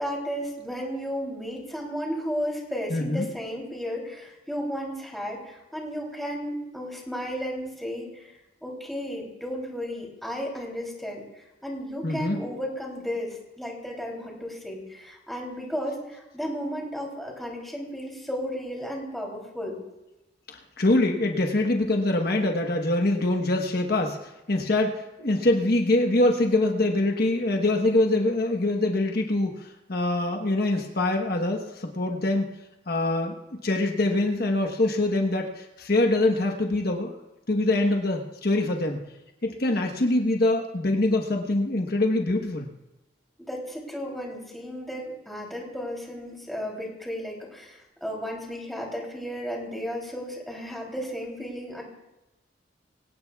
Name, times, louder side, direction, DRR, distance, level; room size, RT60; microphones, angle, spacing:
voice 1, 0.0-8.4 8.6-19.8 39.7-39.8 43.5-51.8, equal, ahead, -2 dB, 3.1 m, -34 dB
voice 2, 2.9-3.3 12.0-12.4 20.5-32.4 32.9-33.3 33.6-37.1 37.5-39.0 39.4-42.7, left 2 dB, 60° left, 3 dB, 1.1 m, -24 dB
24.5 x 17.5 x 2.4 m, 0.98 s
head